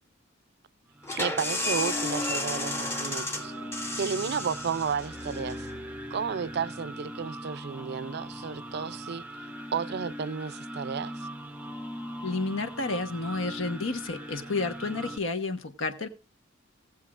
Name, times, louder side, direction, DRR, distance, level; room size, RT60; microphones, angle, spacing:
sound 1, 0.9-15.2, equal, 5° right, 0.5 m, -40 dB
sound 2, 1.0-6.5, left 1 dB, 15° left, 0.9 m, -33 dB
voice 1, 1.2-3.5 3.9-5.7 6.1-9.2 9.7-11.1, right 6 dB, 55° right, 0.4 m, -32 dB
voice 2, 12.2-16.1, left 3 dB, 75° left, 1.1 m, -31 dB
18.0 x 7.3 x 2.4 m
head